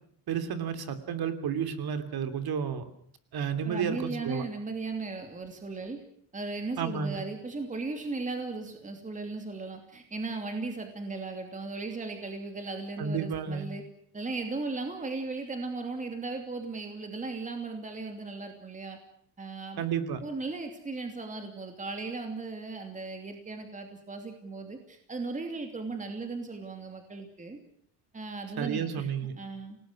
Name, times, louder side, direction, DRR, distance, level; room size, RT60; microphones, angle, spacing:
voice 1, 0.3-2.8 3.3-4.4 6.8-7.2 13.0-13.7 19.8-20.2 28.6-29.3, right 7 dB, 50° right, 10 dB, 3.1 m, -31 dB
voice 2, 3.6-6.0 6.3-13.8 14.1-19.0 19.4-19.8 20.2-27.6 28.1-29.1 29.4-29.8, right 3 dB, 15° right, 5 dB, 2.8 m, -37 dB
28.5 x 19.0 x 6.3 m, 0.63 s
cardioid pair, 150°, 49 cm